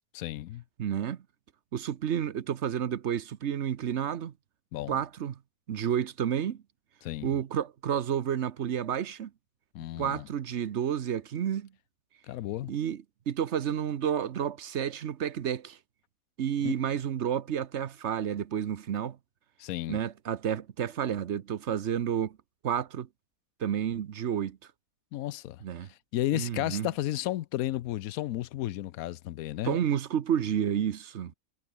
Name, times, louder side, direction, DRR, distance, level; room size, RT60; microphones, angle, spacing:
voice 1, 0.1-0.6 4.7-5.0 7.0-7.3 9.7-10.3 12.3-12.7 16.6-16.7 19.6-20.0 25.1-25.6 26.1-29.8, left 14 dB, 75° left, 1.0 m, -33 dB
voice 2, 0.8-1.2 1.7-4.3 4.9-5.4 5.7-6.6 7.2-9.3 10.0-11.7 12.7-15.8 16.4-19.2 19.9-22.4 22.6-23.1 23.6-24.6 25.6-25.9 26.3-26.9 29.6-31.3, right 9 dB, 55° right, 1.0 m, -30 dB
omnidirectional pair, 1.6 m